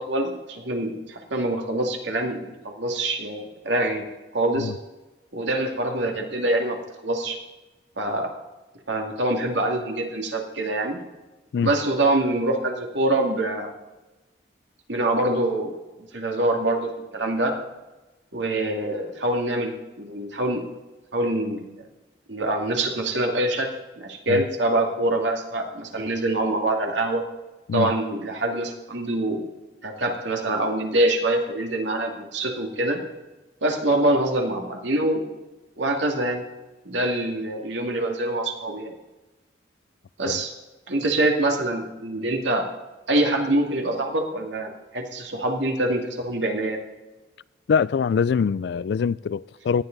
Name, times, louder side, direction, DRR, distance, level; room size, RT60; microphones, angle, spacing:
voice 1, 0.0-4.1 4.3-4.7 5.3-6.8 7.0-7.4 8.0-8.3 8.9-11.0 11.6-13.7 14.9-15.7 16.1-17.5 18.3-20.6 21.1-21.8 22.3-23.7 24.0-27.2 27.7-29.4 29.8-33.0 33.6-35.3 35.8-36.4 36.9-38.9 40.2-40.5 40.9-42.6 43.1-46.8, right 1 dB, 80° right, 2.3 m, -25 dB
voice 2, 47.7-49.8, left 6 dB, 65° left, 0.3 m, -23 dB
18.0 x 11.5 x 4.0 m
head